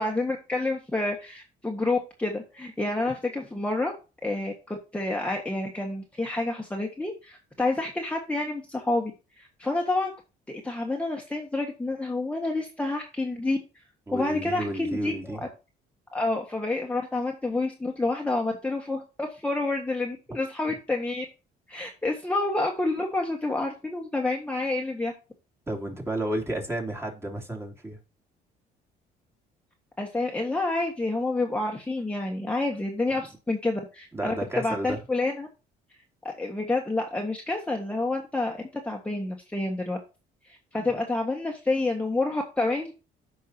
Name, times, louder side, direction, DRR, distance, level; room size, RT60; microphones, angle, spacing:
voice 1, 0.0-3.9 4.2-9.1 9.4-10.1 10.5-13.6 14.1-15.4 16.1-21.2 21.7-25.1 30.0-35.5 36.2-40.0 40.5-42.9, left 2 dB, 5° left, 1.6 m, -28 dB
voice 2, 14.1-15.4 20.7-20.8 25.7-28.0 34.1-35.0 40.7-40.9, right 1 dB, 15° right, 2.9 m, -32 dB
14.5 x 5.6 x 2.8 m
cardioid pair, 110°, 17 cm